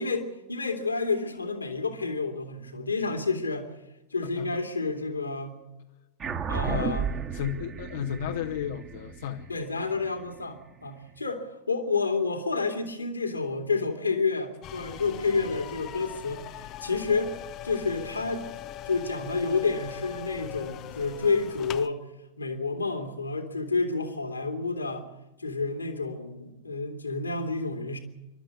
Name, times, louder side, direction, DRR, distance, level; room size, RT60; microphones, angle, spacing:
voice 1, 0.0-3.7 4.1-5.5 6.5-7.1 9.5-16.4 16.8-17.3 17.6-18.5 18.9-22.0 22.4-25.1 25.4-28.0, left 4 dB, 80° left, 2.6 m, -29 dB
sound 1, 6.2-11.0, right 6 dB, 25° right, 1.8 m, -34 dB
voice 2, 6.5-7.0 7.3-9.6, left 9 dB, 60° left, 1.0 m, -33 dB
sound 2, 14.6-21.9, left 13 dB, 35° left, 0.7 m, -41 dB
27.0 x 12.5 x 8.4 m
figure-of-eight pair, 90°, 0 cm